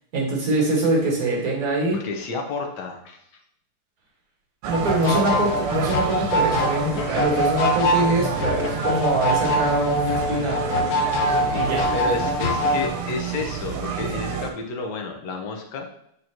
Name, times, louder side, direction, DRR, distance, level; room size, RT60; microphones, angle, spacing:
voice 1, 0.1-2.0 4.7-10.6 11.5-11.9, right 2 dB, 40° right, -3 dB, 2.1 m, -23 dB
voice 2, 1.9-3.2 5.0-5.6 11.9-15.9, left 3 dB, 60° left, 2 dB, 1.4 m, -30 dB
sound 1, 4.6-14.5, right 7 dB, 85° right, 1.6 m, -30 dB
sound 2, 4.7-12.9, left 1 dB, 75° left, 0.8 m, -24 dB
8.1 x 4.0 x 2.9 m, 0.74 s
omnidirectional pair, 2.4 m